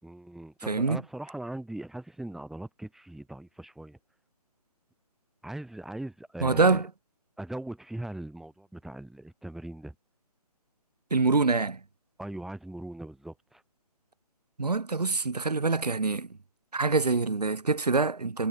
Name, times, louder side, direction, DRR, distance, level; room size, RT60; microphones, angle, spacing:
voice 1, 0.0-4.0 5.4-6.8 7.4-9.9 12.2-13.6, right 1 dB, ahead, 5.1 m, -40 dB
voice 2, 0.7-1.0 6.4-6.9 11.1-11.8 14.6-16.3 16.7-18.5, right 3 dB, 85° right, 1.9 m, -25 dB
figure-of-eight pair, 145°, 20 cm